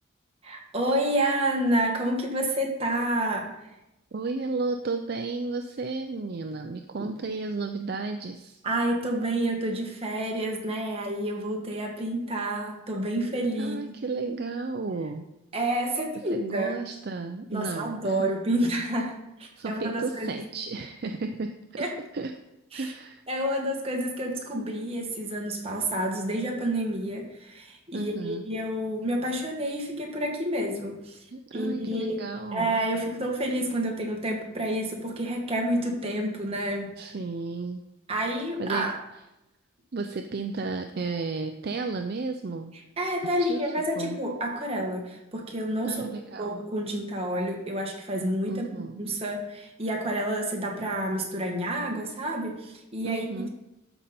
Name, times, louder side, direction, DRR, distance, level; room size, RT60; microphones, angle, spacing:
voice 1, 0.4-3.5 7.0-7.1 8.6-13.8 15.5-16.8 17.5-20.4 21.8-21.9 22.7-22.9 23.3-31.2 31.5-32.2 32.5-36.9 38.1-39.0 43.0-46.0 46.4-48.7 49.0-53.2, right 1 dB, 30° right, 0 dB, 1.5 m, -29 dB
voice 2, 4.1-8.6 13.6-15.2 16.3-18.2 19.6-21.9 22.1-22.3 22.7-23.2 27.9-28.4 31.3-32.7 37.0-37.8 38.6-38.9 39.9-42.7 43.4-43.6 44.0-44.2 45.8-46.6 48.5-49.1 53.0-53.5, right 3 dB, 50° right, 6 dB, 0.4 m, -33 dB
12.5 x 5.4 x 4.3 m, 0.93 s
head